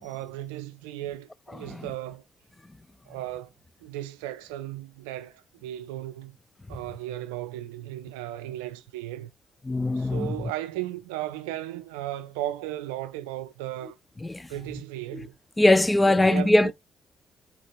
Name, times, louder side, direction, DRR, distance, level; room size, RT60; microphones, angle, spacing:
voice 1, 0.0-2.2 3.1-3.5 3.8-6.4 6.7-9.3 10.0-14.0 14.5-15.3 16.0-16.7, right 14 dB, 80° right, 0.4 m, -36 dB
voice 2, 9.7-10.4 14.2-14.5 15.1-15.3 15.6-16.7, left 2 dB, 15° left, 0.3 m, -21 dB
4.0 x 2.3 x 3.4 m
hypercardioid pair, 50°, 0 cm